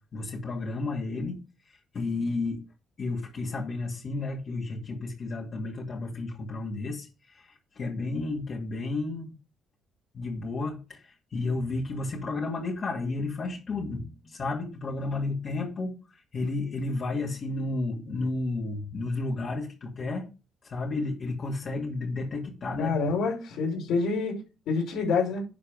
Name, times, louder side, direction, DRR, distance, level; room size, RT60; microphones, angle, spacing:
voice 1, 0.1-2.6 3.0-9.3 10.1-20.3 20.6-22.9, left 3 dB, 50° left, 2.4 m, -32 dB
voice 2, 22.8-24.4 24.7-25.4, left 4 dB, 75° left, 5.6 m, -27 dB
11.0 x 4.5 x 5.2 m
cardioid pair, 90°, 0 cm